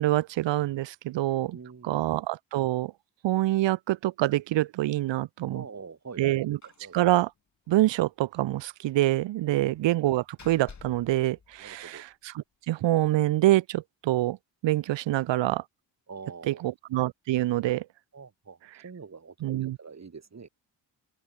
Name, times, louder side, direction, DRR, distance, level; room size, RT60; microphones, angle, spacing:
voice 1, 0.0-1.6 1.8-2.9 3.2-5.6 6.2-6.6 6.9-7.3 7.7-12.0 12.7-14.4 14.6-15.6 16.5-17.8 19.4-19.8, right 15 dB, 80° right, 0.7 m, -26 dB
voice 2, 1.5-2.0 5.5-6.4 6.8-7.0 9.4-9.7 11.6-12.0 16.1-16.7 18.1-18.6 18.8-20.5, right 5 dB, 35° right, 6.7 m, -45 dB
Slam, 6.6-6.9 7.2-7.3 7.6-7.8 9.5-12.1, left 6 dB, 40° left, 3.1 m, -52 dB
open air
cardioid pair, 105°, 44 cm